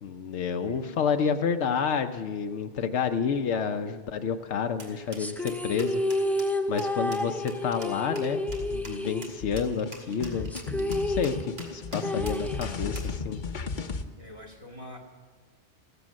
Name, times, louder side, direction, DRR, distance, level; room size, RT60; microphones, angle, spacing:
voice 1, 0.0-6.0 6.7-8.4 8.7-13.4, left 6 dB, 75° left, 7 dB, 1.0 m, -29 dB
voice 2, 0.6-1.1 8.9-9.0 14.2-15.0, left 1 dB, 30° right, 0 dB, 2.1 m, -45 dB
sound 1, 4.8-13.2, right 2 dB, 60° right, 2.7 m, -45 dB
sound 2, 5.2-9.9 10.1-10.2 10.5-13.2, left 1 dB, 5° left, 0.3 m, -31 dB
sound 3, 8.5-14.0, left 5 dB, 45° left, 0.9 m, -35 dB
15.5 x 15.0 x 6.2 m, 1.4 s
omnidirectional pair, 1.2 m